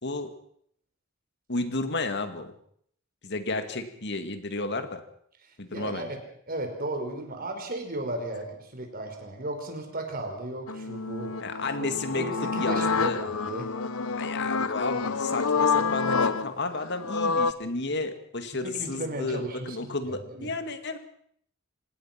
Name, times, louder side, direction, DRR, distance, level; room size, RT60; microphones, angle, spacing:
voice 1, 0.0-0.3 1.5-2.5 3.2-5.0 5.6-6.1 11.4-13.2 14.2-21.0, left 3 dB, 55° left, 8 dB, 2.3 m, -32 dB
voice 2, 5.7-6.2 6.5-11.3 11.8-13.7 18.5-19.9 20.3-20.5, right 1 dB, 45° right, 4 dB, 5.1 m, -35 dB
sound 1, 10.7-17.5, left 4 dB, 85° left, 1.0 m, -28 dB
26.0 x 19.0 x 6.0 m, 0.65 s
head